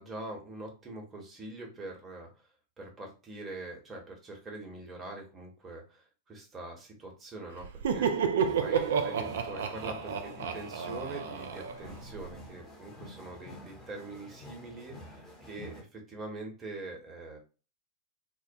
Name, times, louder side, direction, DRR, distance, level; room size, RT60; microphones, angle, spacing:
voice 1, 0.0-2.4 2.8-8.3 8.6-17.4, right 2 dB, 20° right, 0 dB, 0.9 m, -44 dB
Laughter, 7.6-12.3, right 6 dB, 60° right, 0.3 m, -31 dB
sound 1, 8.4-15.8, left 1 dB, 15° left, 0.8 m, -49 dB
2.2 x 2.1 x 2.7 m, 0.33 s
figure-of-eight pair, 90°, 0 cm